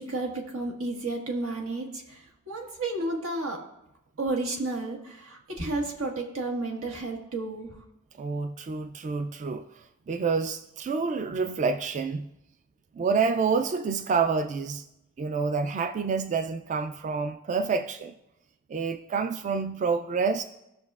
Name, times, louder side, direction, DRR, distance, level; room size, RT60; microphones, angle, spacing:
voice 1, 0.0-3.6 4.2-7.8, right 2 dB, 85° right, 0 dB, 1.6 m, -32 dB
voice 2, 8.2-12.3 13.0-14.8 15.2-18.1 18.7-20.4, right 5 dB, 35° right, 9 dB, 0.3 m, -28 dB
16.5 x 6.1 x 2.4 m, 0.87 s
head